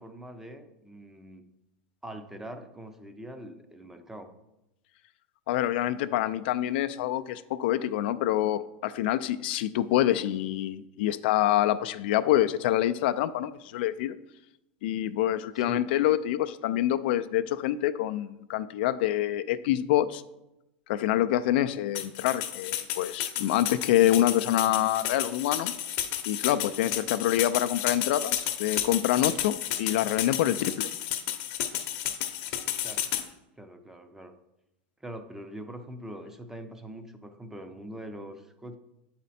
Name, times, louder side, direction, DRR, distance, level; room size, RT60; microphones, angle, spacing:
voice 1, 0.0-1.4 2.0-4.3 15.5-15.9 32.8-33.1 33.6-34.3 35.0-38.7, right 1 dB, 5° right, 8 dB, 0.6 m, -43 dB
voice 2, 5.5-14.1 14.8-20.2 20.9-25.7 26.3-30.9, left 13 dB, 70° left, 11 dB, 0.3 m, -26 dB
sound 1, 21.9-33.2, left 11 dB, 55° left, 0.8 m, -32 dB
8.0 x 4.2 x 4.2 m, 0.90 s
supercardioid pair, 135°, 6 cm